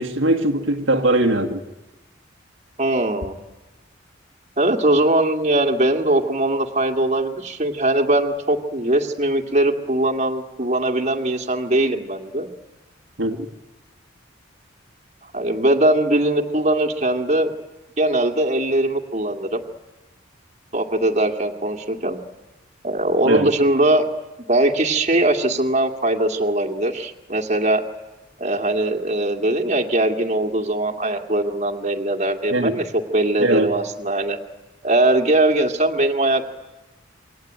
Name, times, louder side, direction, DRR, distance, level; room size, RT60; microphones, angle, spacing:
voice 1, 0.0-1.6 13.2-13.4 23.2-23.5 32.5-32.7 33.4-33.7, right 1 dB, 70° right, 1.6 m, -20 dB
voice 2, 2.8-3.4 4.6-12.5 15.3-17.5 18.0-19.6 20.7-22.2 22.8-24.0 24.5-27.8 28.4-32.8 33.1-34.4 34.8-36.4, right 1 dB, 35° right, 2.1 m, -20 dB
27.5 x 23.0 x 9.3 m
head